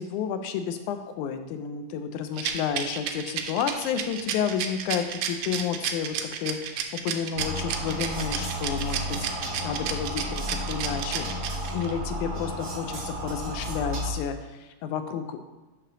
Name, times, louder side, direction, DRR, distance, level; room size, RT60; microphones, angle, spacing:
voice 1, 0.0-9.0 9.3-11.3 11.7-15.5, left 7 dB, 90° left, 8 dB, 2.1 m, -31 dB
Rattle, 2.4-11.9, right 9 dB, 85° right, 2.0 m, -31 dB
sound 1, 7.3-14.1, equal, 55° right, 0.7 m, -33 dB
7.3 x 3.3 x 6.0 m, 1.1 s
omnidirectional pair, 3.4 m